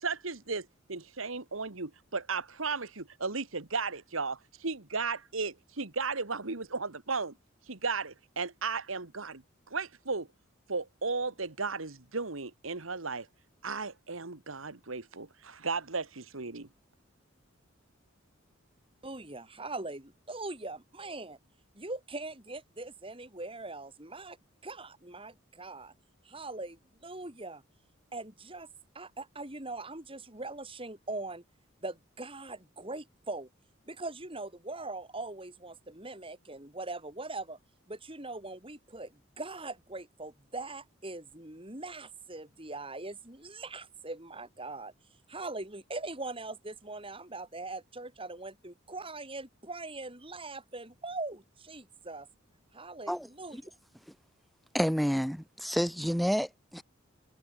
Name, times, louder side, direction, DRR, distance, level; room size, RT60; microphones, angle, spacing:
voice 1, 0.0-7.3 7.7-9.4 9.7-10.3 10.7-13.3 13.6-16.7, right 4 dB, 90° right, 2.0 m, -35 dB
voice 2, 19.0-21.4 21.7-24.4 24.6-25.9 26.2-27.6 28.1-28.7 28.9-31.4 31.8-33.5 33.9-37.6 37.9-44.9 45.3-52.3 52.7-53.7, right 2 dB, 25° right, 6.1 m, -41 dB
voice 3, 54.7-56.8, equal, ahead, 1.3 m, -29 dB
head